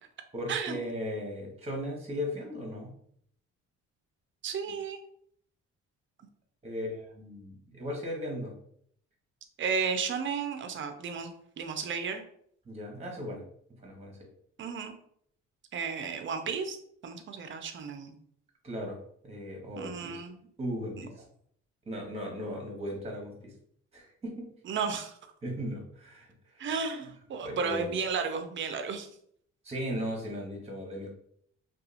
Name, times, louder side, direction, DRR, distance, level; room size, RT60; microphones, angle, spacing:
voice 1, 0.3-2.9 6.6-8.5 12.7-13.4 13.8-14.2 18.6-19.0 19.2-20.2 20.6-21.1 21.9-23.5 23.9-24.5 25.4-26.3 26.5-26.7 27.4-28.0 29.6-31.1, equal, 20° right, 0 dB, 0.8 m, -37 dB
voice 2, 4.4-5.0 9.6-11.3 11.6-12.2 14.6-14.9 15.7-16.8 17.0-18.1 19.8-20.4 21.0-21.1 24.6-25.1 26.6-29.1, right 5 dB, 40° right, 6 dB, 0.5 m, -33 dB
2.8 x 2.3 x 2.4 m, 0.66 s
cardioid pair, 90°, 30 cm